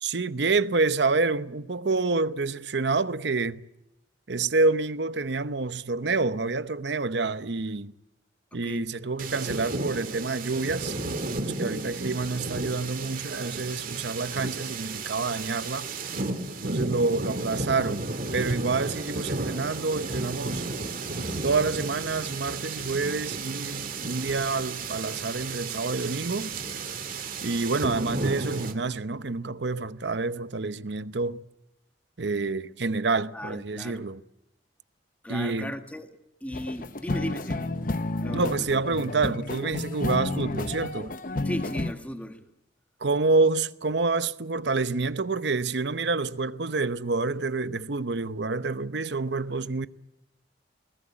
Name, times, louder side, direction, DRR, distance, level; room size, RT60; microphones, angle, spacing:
voice 1, 0.0-3.6 4.3-7.9 8.5-11.0 11.3-15.9 16.6-20.7 21.4-26.5 27.4-31.4 32.2-34.2 35.3-35.7 38.3-41.1 43.0-49.9, right 3 dB, 65° right, 0.9 m, -28 dB
sound 1, 9.2-28.7, right 3 dB, 50° right, 2.2 m, -33 dB
voice 2, 11.5-12.0 33.3-34.1 35.2-36.1 36.4-37.7 38.2-38.8 41.5-42.4, equal, 10° left, 1.7 m, -37 dB
sound 2, 36.5-41.9, left 2 dB, 45° left, 0.9 m, -31 dB
21.5 x 19.0 x 8.7 m
head